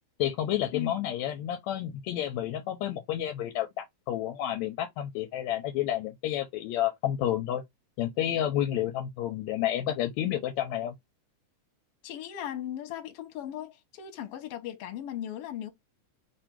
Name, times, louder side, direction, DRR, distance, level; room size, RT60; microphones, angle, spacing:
voice 1, 0.2-7.6 8.0-10.9, left 12 dB, 80° left, 1.8 m, -30 dB
voice 2, 12.0-15.7, left 11 dB, 60° left, 1.8 m, -37 dB
4.4 x 2.6 x 4.4 m
omnidirectional pair, 3.3 m